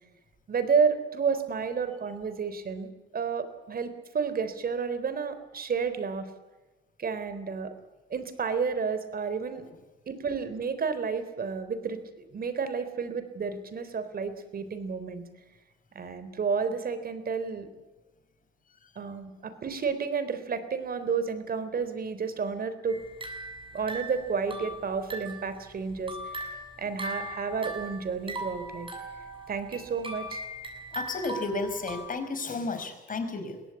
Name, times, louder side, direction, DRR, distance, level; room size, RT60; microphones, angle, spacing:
voice 1, 0.5-6.3 7.0-7.7 8.1-9.6 10.1-15.2 15.9-17.7 19.0-23.0 23.7-26.5 26.8-28.9 29.5-30.4, right 5 dB, 50° right, 11 dB, 3.7 m, -31 dB
sound 1, 22.9-25.5 25.9-32.1, right 1 dB, 25° right, 6.8 m, -39 dB
voice 2, 30.9-33.6, left 3 dB, 45° left, 8 dB, 5.3 m, -33 dB
22.5 x 17.5 x 8.5 m, 1.1 s
cardioid pair, 90°, 20 cm